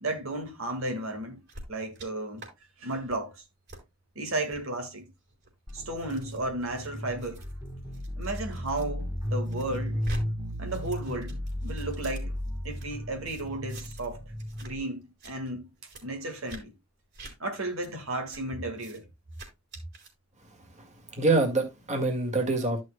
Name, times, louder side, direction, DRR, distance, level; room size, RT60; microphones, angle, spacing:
voice 1, 0.0-1.4 1.7-2.5 2.8-3.3 4.2-5.1 5.7-7.4 8.2-10.0 10.6-11.4 11.6-12.3 12.6-14.2 14.6-15.7 16.0-16.7 17.4-19.0, right 2 dB, 80° right, 1.9 m, -33 dB
sound 1, 1.5-2.1 2.4-2.5 2.9-3.2 3.7-3.8 4.4-4.6 5.3-8.9 9.2-10.2 10.5-12.9 13.3-14.1 14.4-14.7 15.0-15.3 15.8-16.0 16.5-16.6 17.1-17.3 17.8-17.9 18.3-18.4 18.7-19.0 19.3-20.1, right 1 dB, 55° right, 4.4 m, -45 dB
sound 2, 5.7-14.8, equal, 20° right, 1.9 m, -35 dB
voice 2, 20.4-22.8, right 2 dB, 35° right, 1.9 m, -27 dB
13.5 x 6.3 x 2.2 m
head